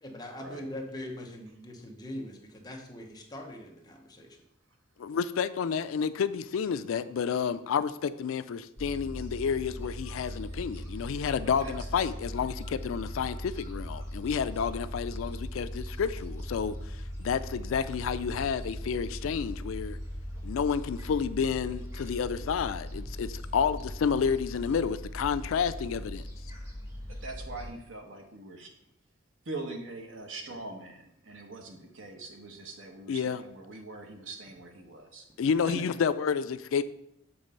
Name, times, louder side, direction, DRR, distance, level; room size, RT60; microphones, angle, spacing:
voice 1, 0.0-4.4, left 1 dB, 20° left, 0.9 m, -42 dB
voice 2, 5.0-20.0 20.4-26.2 33.1-33.4 35.4-36.8, left 6 dB, 85° left, 0.4 m, -30 dB
Gull seagull, 8.8-27.7, equal, 15° right, 1.6 m, -39 dB
voice 3, 11.4-11.7 27.1-28.7 29.5-35.2 35.7-35.8, right 2 dB, 70° right, 1.1 m, -42 dB
7.0 x 3.2 x 5.3 m
head